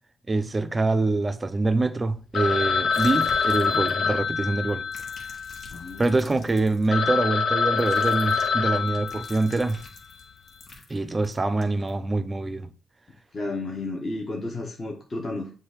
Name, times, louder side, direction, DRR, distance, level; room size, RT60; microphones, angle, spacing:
voice 1, 0.3-4.9 6.0-9.8 10.9-12.7, right 2 dB, 25° right, 0.5 m, -25 dB
Telephone, 2.3-6.1 6.6-6.7 6.9-9.8, left 5 dB, 65° left, 0.6 m, -26 dB
sound 1, 2.9-4.2 4.7-6.9 7.8-11.9, left 3 dB, 50° left, 1.8 m, -47 dB
voice 2, 5.7-6.0 13.3-15.5, left 2 dB, 30° left, 1.2 m, -32 dB
7.2 x 2.6 x 4.9 m
cardioid pair, 90°, 0 cm